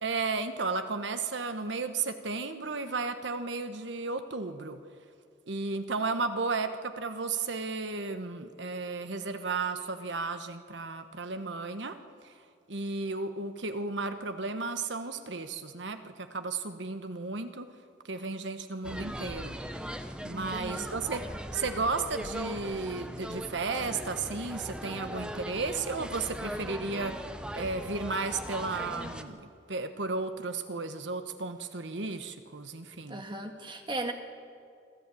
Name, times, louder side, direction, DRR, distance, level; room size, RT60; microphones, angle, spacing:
voice 1, 0.0-4.8 5.5-12.0 12.2-12.3 12.7-17.7 18.1-19.6 20.2-27.2 27.5-29.4 29.7-33.2, right 3 dB, 70° right, 9 dB, 1.2 m, -34 dB
sound 1, 18.8-29.2, equal, 5° right, 0.9 m, -39 dB
voice 2, 20.3-21.0 33.1-34.1, right 2 dB, 25° right, 4 dB, 1.7 m, -37 dB
26.0 x 13.5 x 8.5 m, 2.4 s
head